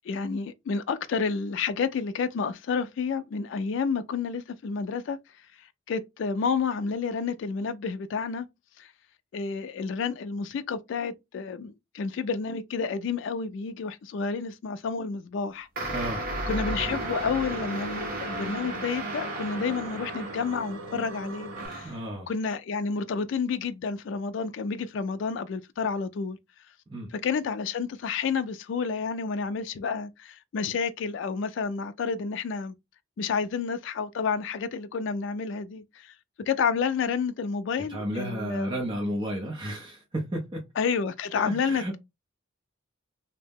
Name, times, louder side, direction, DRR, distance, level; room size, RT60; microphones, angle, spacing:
voice 1, 0.1-5.2 5.6-8.5 8.8-8.9 9.3-15.9 16.5-21.9 22.3-26.4 27.1-32.7 33.2-36.1 36.5-38.8 40.8-42.0, left 5 dB, 60° left, 0.3 m, -30 dB
sound 1, 15.8-20.8 21.5-22.1, right 2 dB, 45° right, 1.0 m, -34 dB
voice 2, 15.9-16.2 21.8-22.3 26.9-27.1 37.8-40.7 41.4-42.0, right 1 dB, 25° right, 0.6 m, -32 dB
sound 2, 16.3-21.7, right 2 dB, 75° right, 0.6 m, -40 dB
2.7 x 2.0 x 3.4 m
head